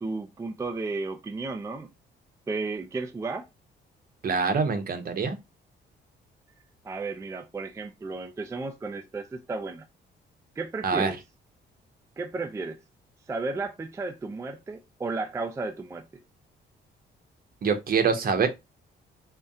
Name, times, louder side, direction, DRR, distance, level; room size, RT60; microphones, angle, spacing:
voice 1, 0.0-1.9 2.5-3.5 6.8-9.9 10.6-11.2 12.2-12.8 13.3-16.0, right 3 dB, 15° right, 0.3 m, -33 dB
voice 2, 4.2-5.4 10.8-11.1 17.6-18.5, right 5 dB, 50° right, 0.8 m, -25 dB
2.6 x 2.2 x 3.5 m
cardioid pair, 90°, 20 cm